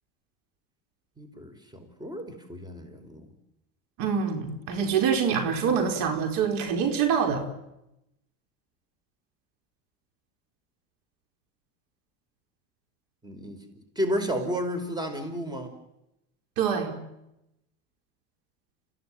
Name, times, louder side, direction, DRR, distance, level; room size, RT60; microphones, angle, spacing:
voice 1, 1.2-3.3 13.2-13.6 14.0-15.7, equal, 10° right, 8 dB, 5.0 m, -32 dB
voice 2, 4.0-7.4 16.6-16.9, right 6 dB, 65° right, 4 dB, 4.8 m, -25 dB
29.0 x 16.0 x 9.2 m, 0.87 s
supercardioid pair, 95°, 36 cm